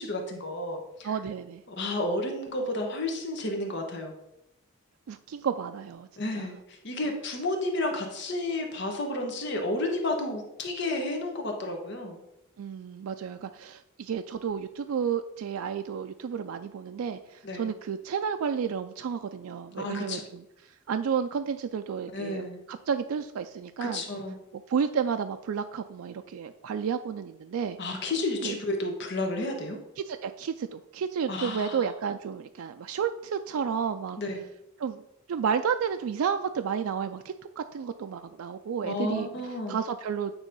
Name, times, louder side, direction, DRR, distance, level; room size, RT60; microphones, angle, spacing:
voice 1, 0.0-1.1 1.7-4.1 6.2-12.2 17.4-17.7 19.8-20.2 22.1-22.6 23.8-24.4 27.8-29.8 31.3-31.9 34.2-34.4 38.8-39.8, left 2 dB, 55° left, 3 dB, 1.1 m, -31 dB
voice 2, 1.0-1.6 5.1-6.1 6.3-6.5 12.6-20.4 20.9-24.0 24.7-27.8 28.4-28.6 30.0-34.2 34.8-35.0 35.3-39.3 39.7-40.3, right 7 dB, 85° right, 8 dB, 0.4 m, -31 dB
9.0 x 3.1 x 5.3 m, 0.85 s
head